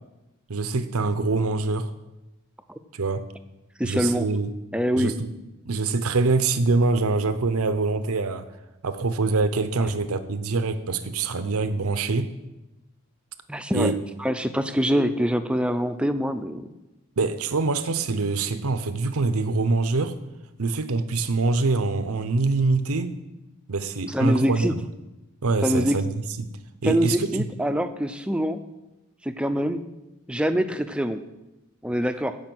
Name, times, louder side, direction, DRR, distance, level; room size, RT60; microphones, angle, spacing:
voice 1, 0.5-1.9 2.9-3.2 3.8-4.5 5.0-5.3 5.7-8.4 8.8-12.3 13.7-14.0 17.2-20.2 20.6-23.1 23.7-24.8 25.4-26.5 26.8-27.4, right 3 dB, 85° right, 11 dB, 0.7 m, -24 dB
voice 2, 3.8-4.3 4.7-5.1 13.5-13.9 14.2-16.7 24.1-24.7 25.6-26.0 26.8-28.6 29.3-29.8 30.3-31.2 31.8-32.4, equal, 5° right, 10 dB, 0.5 m, -24 dB
16.0 x 5.5 x 6.1 m, 0.99 s
head